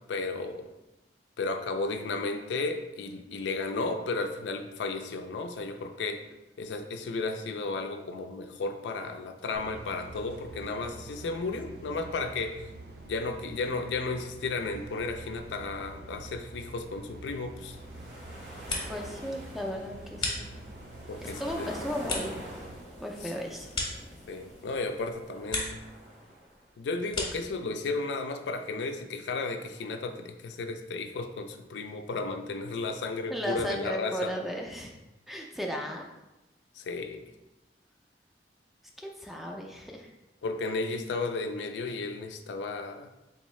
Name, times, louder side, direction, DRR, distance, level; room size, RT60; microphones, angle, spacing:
voice 1, 0.1-0.7 1.4-6.2 6.6-12.6 13.1-17.8 21.1-21.7 24.3-25.8 26.8-34.3 36.8-37.3 40.4-43.1, left 3 dB, 90° left, 6 dB, 0.4 m, -34 dB
sound 1, 9.5-22.8, right 2 dB, 60° right, 0.5 m, -47 dB
sound 2, 17.4-26.6, equal, 85° right, 1.3 m, -46 dB
sound 3, 18.4-19.2 19.5-20.9 21.4-24.6 25.0-25.9 26.2-27.6, left 3 dB, 30° left, 0.7 m, -37 dB
voice 2, 18.9-20.5 21.2-22.4 23.0-23.7 33.3-35.0 35.3-36.1 39.0-40.1, equal, ahead, 0 dB, 0.3 m, -35 dB
3.8 x 2.6 x 3.1 m, 1.0 s
head